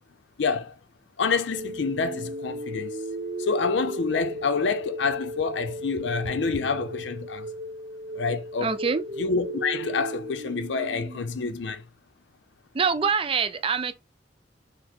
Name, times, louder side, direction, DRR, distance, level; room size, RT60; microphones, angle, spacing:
voice 1, 0.4-0.7 1.2-2.9 3.4-7.5 8.1-8.8 9.2-11.8, left 4 dB, 70° left, 0.5 m, -27 dB
sound 1, 1.5-11.5, right 1 dB, 80° right, 0.7 m, -36 dB
voice 2, 8.6-9.0 12.7-13.9, right 5 dB, 30° right, 0.4 m, -25 dB
4.3 x 2.0 x 4.3 m
head